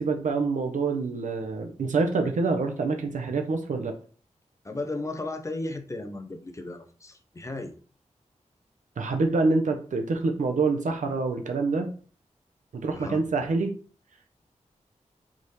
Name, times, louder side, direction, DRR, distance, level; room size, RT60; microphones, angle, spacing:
voice 1, 0.0-3.9 9.0-11.9 12.7-13.7, right 3 dB, 90° right, 3 dB, 0.8 m, -26 dB
voice 2, 4.6-7.7 12.9-13.2, left 2 dB, 25° left, 7 dB, 0.6 m, -35 dB
4.2 x 3.6 x 3.2 m, 0.41 s
wide cardioid pair, 110°, 13 cm